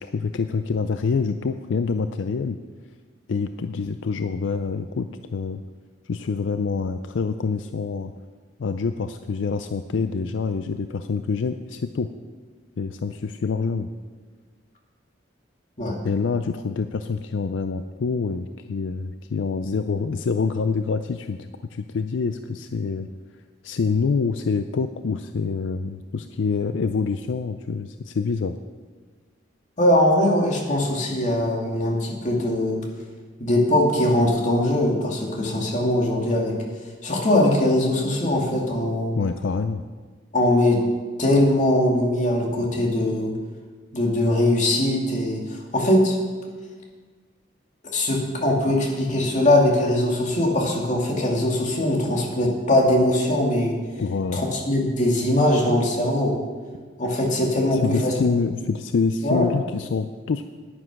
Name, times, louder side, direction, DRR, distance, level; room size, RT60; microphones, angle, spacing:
voice 1, 0.0-2.6 3.3-5.6 6.1-8.1 8.6-12.1 12.8-13.9 16.0-23.1 23.6-28.6 39.1-39.8 54.0-54.4 57.7-60.4, left 4 dB, 75° left, 9 dB, 0.4 m, -26 dB
voice 2, 29.8-32.8 33.4-36.6 37.0-39.1 40.3-40.8 41.2-43.3 43.9-46.2 47.9-53.7 54.3-56.4 57.0-58.1 59.2-59.5, left 1 dB, 40° left, -1 dB, 2.2 m, -21 dB
10.0 x 9.7 x 6.0 m, 1.4 s
head